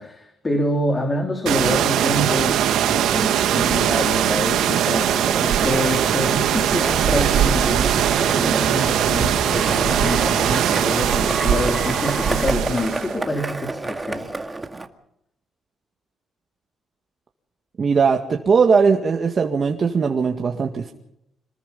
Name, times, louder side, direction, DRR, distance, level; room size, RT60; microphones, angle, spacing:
voice 1, 0.0-14.3, left 1 dB, 25° left, 3 dB, 3.6 m, -26 dB
sound 1, 1.5-13.1, right 10 dB, 85° right, 1.7 m, -20 dB
Skateboard, 5.1-14.9, right 2 dB, 20° right, 2.0 m, -31 dB
sound 2, 5.6-12.4, equal, 5° left, 2.1 m, -32 dB
voice 2, 17.8-20.9, right 5 dB, 40° right, 3 dB, 1.9 m, -19 dB
27.0 x 20.5 x 5.5 m, 0.81 s
cardioid pair, 115°, 0 cm